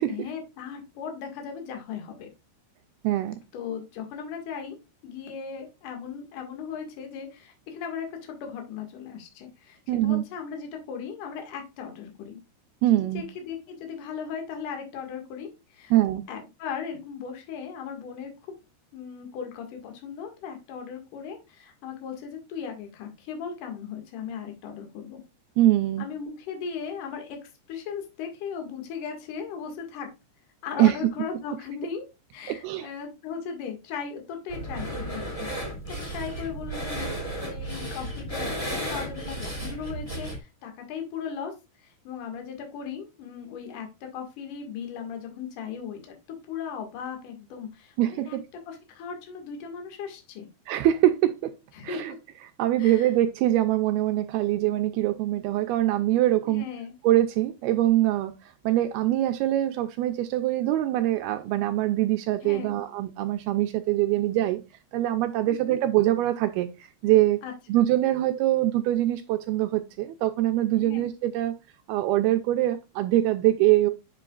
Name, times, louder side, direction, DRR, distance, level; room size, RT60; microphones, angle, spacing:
voice 1, 0.1-2.3 3.5-4.8 5.0-12.4 13.1-15.9 16.3-18.5 18.9-25.2 26.0-27.4 27.7-30.1 30.6-32.1 32.3-35.5 35.9-37.1 37.4-41.5 41.8-46.0 46.3-48.4 48.7-50.5 51.7-52.0 52.8-53.1 56.4-56.9 62.4-62.8 65.5-65.8 67.4-67.5 70.8-71.0, left 6 dB, 55° left, 3.0 m, -37 dB
voice 2, 3.0-3.4 9.9-10.2 12.8-13.2 15.9-16.2 25.6-26.1 30.8-31.0 32.5-32.9 48.0-48.4 50.7-51.5 51.8-52.1 52.6-56.7 57.0-58.3 58.6-64.6 64.9-67.4 67.7-71.5 71.9-73.9, right 14 dB, 85° right, 2.3 m, -23 dB
sound 1, 34.5-40.4, right 1 dB, 15° left, 1.3 m, -34 dB
8.0 x 7.6 x 2.4 m
omnidirectional pair, 5.0 m